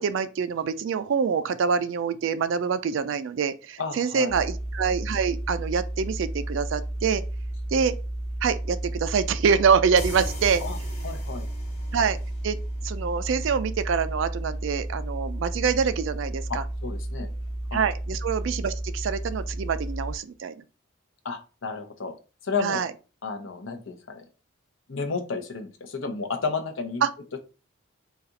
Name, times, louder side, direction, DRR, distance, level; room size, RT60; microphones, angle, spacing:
voice 1, 0.0-7.2 7.7-8.0 8.4-10.6 11.9-12.2 12.4-12.6 12.8-16.6 17.7-20.5 22.6-22.9 27.0-27.1, right 6 dB, 70° right, 0.3 m, -25 dB
voice 2, 3.8-4.5 10.6-10.8 11.0-11.5 16.5-17.3 17.7-17.8 21.2-22.1 22.4-22.8 23.2-24.2 24.9-27.1, left 4 dB, 70° left, 0.7 m, -32 dB
sound 1, 4.3-20.2, right 1 dB, 85° left, 1.2 m, -32 dB
sound 2, 10.0-13.5, left 1 dB, 30° left, 0.9 m, -40 dB
4.1 x 2.4 x 3.9 m
head